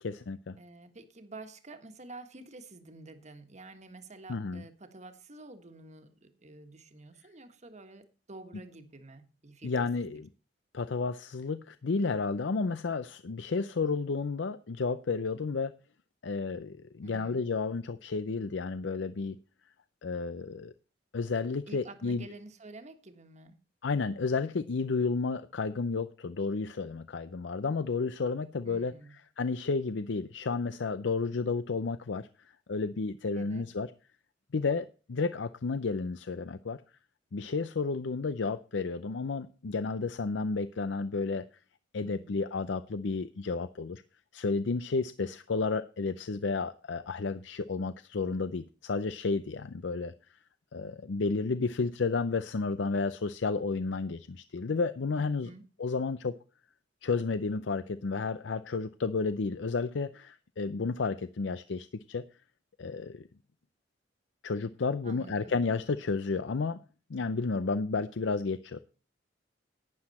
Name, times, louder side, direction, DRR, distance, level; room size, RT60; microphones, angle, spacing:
voice 1, 0.0-0.6 4.3-4.6 9.6-10.3 10.7-15.7 16.2-19.4 20.0-20.7 21.1-22.2 23.8-28.9 29.4-33.9 34.5-36.8 37.3-41.4 41.9-44.0 44.3-50.1 50.7-55.5 55.8-56.4 57.0-62.2 62.8-63.3 64.4-66.8 67.1-68.8, left 4 dB, 70° left, 13 dB, 0.5 m, -32 dB
voice 2, 0.6-10.1 17.0-17.4 21.7-23.6 28.6-29.2 33.4-33.7 42.0-42.4 55.2-55.6 65.0-65.6, right 2 dB, 40° right, 7 dB, 1.5 m, -49 dB
12.0 x 9.8 x 4.2 m, 0.36 s
head